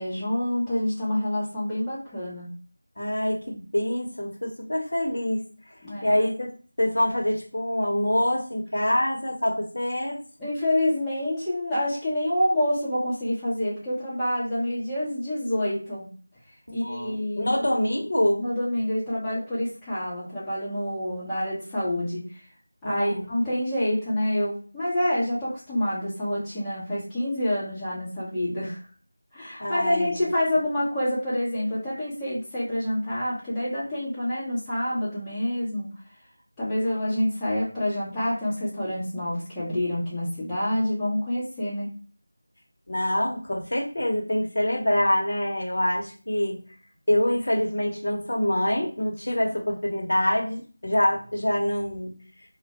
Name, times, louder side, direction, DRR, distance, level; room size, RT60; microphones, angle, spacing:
voice 1, 0.0-2.5 5.8-6.2 10.4-16.1 16.7-17.5 18.4-22.2 22.8-28.8 29.3-35.9 36.6-41.9, left 1 dB, 5° left, -13 dB, 0.7 m, -27 dB
voice 2, 3.0-6.5 6.8-10.2 16.7-18.5 22.8-23.3 29.6-30.2 42.9-46.6 47.1-52.1, left 1 dB, 60° left, 0 dB, 0.7 m, -25 dB
2.1 x 2.1 x 2.8 m, 0.39 s
figure-of-eight pair, 170°, 0 cm